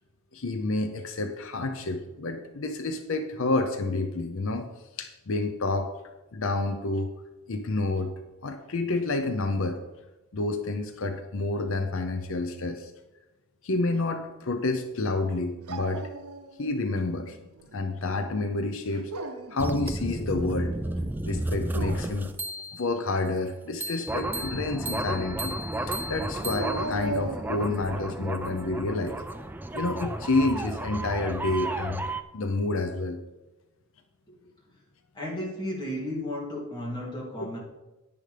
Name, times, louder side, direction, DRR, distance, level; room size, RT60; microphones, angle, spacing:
voice 1, 0.3-4.7 5.0-5.9 6.3-7.1 7.5-8.1 8.4-9.8 10.3-12.9 13.6-16.1 16.6-17.4 17.7-19.1 19.5-20.8 21.3-22.3 22.7-25.6 25.8-29.2 29.7-32.0 32.3-33.2 37.4-37.5, left 2 dB, 60° left, 7 dB, 0.6 m, -29 dB
Dog, 15.7-16.8 17.2-17.9 18.9-19.7 21.6-22.3 26.5-27.9, right 2 dB, 90° right, 0.8 m, -36 dB
sound 1, 19.6-22.9 23.8-32.2, right 1 dB, 10° right, 0.4 m, -32 dB
voice 2, 35.1-37.6, left 1 dB, 20° left, -4 dB, 2.6 m, -33 dB
10.0 x 10.0 x 3.3 m, 1.1 s
head